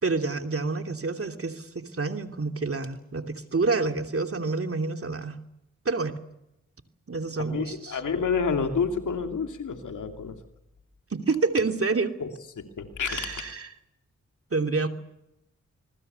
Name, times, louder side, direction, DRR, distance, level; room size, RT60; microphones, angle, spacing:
voice 1, 0.0-5.4 5.8-6.1 7.1-8.0 11.1-12.1 13.1-13.7 14.5-14.9, right 3 dB, 50° right, 6 dB, 2.9 m, -28 dB
voice 2, 7.4-10.4 12.2-12.3 12.6-13.2, left 5 dB, 85° left, 5 dB, 2.8 m, -29 dB
25.5 x 21.5 x 7.0 m, 0.85 s
cardioid pair, 45°, 30 cm